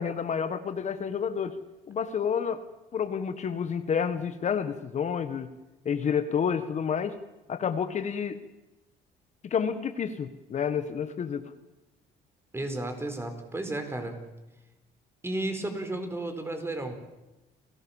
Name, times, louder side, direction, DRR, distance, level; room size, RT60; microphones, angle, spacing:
voice 1, 0.0-1.6 1.9-2.6 2.9-5.5 5.8-7.1 7.5-8.4 9.5-11.5, left 7 dB, 45° left, 9 dB, 1.6 m, -29 dB
voice 2, 12.5-14.2 15.2-17.0, right 2 dB, 15° right, 6 dB, 4.5 m, -33 dB
29.5 x 17.5 x 7.3 m, 1.0 s
cardioid pair, 110°, 17 cm